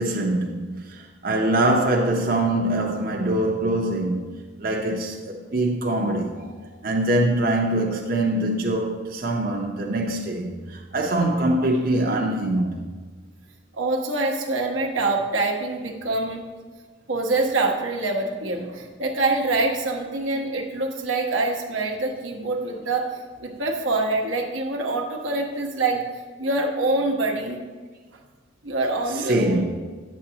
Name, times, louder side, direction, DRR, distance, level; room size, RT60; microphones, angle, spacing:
voice 1, 0.0-4.2 4.6-6.5 6.8-12.8 29.2-29.6, right 1 dB, 50° right, 0.7 m, -23 dB
voice 2, 13.8-16.5 17.1-23.1 23.4-26.0 26.4-27.6 28.6-29.6, right 2 dB, 85° right, 1.0 m, -25 dB
9.3 x 7.3 x 2.8 m
head